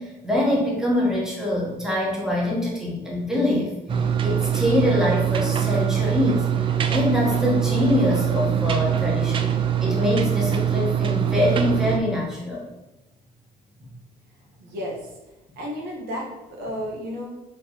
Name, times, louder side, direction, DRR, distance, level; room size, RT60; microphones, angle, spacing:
voice 1, 0.0-3.8 4.2-6.4 6.9-9.5 9.8-12.6, left 1 dB, 5° right, -4 dB, 1.2 m, -24 dB
sound 1, 3.9-12.0, right 9 dB, 35° right, 0.4 m, -23 dB
voice 2, 14.6-15.0 15.6-17.3, equal, 90° right, -2 dB, 1.3 m, -32 dB
3.9 x 3.3 x 4.0 m, 1.0 s
cardioid pair, 130°, 16 cm